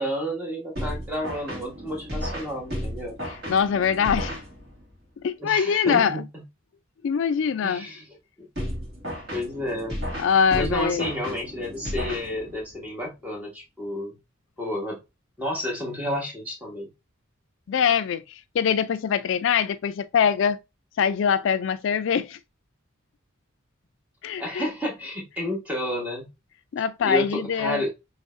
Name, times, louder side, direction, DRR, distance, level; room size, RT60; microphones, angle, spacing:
voice 1, 0.0-3.2 5.4-6.4 7.6-8.1 8.4-8.5 9.3-10.0 10.6-14.1 14.6-15.0 15.4-16.9 24.4-26.3 27.0-27.9, equal, 10° right, 1.2 m, -30 dB
sound 1, 0.8-5.0 8.6-12.8, equal, 50° right, 2.0 m, -34 dB
voice 2, 3.5-4.4 5.2-6.2 7.0-7.9 10.2-11.1 17.7-20.6 21.0-22.4 24.2-24.7 26.7-27.8, left 7 dB, 65° left, 0.3 m, -23 dB
6.2 x 3.4 x 2.5 m
head